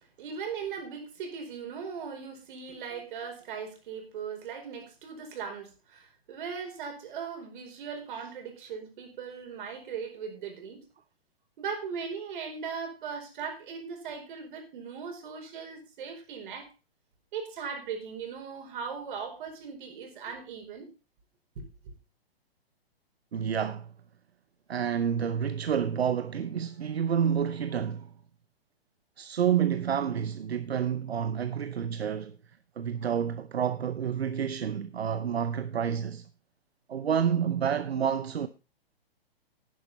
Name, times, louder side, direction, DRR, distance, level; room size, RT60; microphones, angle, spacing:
voice 1, 0.2-10.8 11.6-16.7 17.3-20.9 21.6-21.7, right 6 dB, 55° right, 4.8 m, -39 dB
voice 2, 23.3-23.9 24.7-28.1 29.2-32.4 32.8-36.3 36.9-38.5, right 8 dB, 80° right, 0.8 m, -29 dB
11.0 x 9.8 x 4.1 m
hypercardioid pair, 125°, 31 cm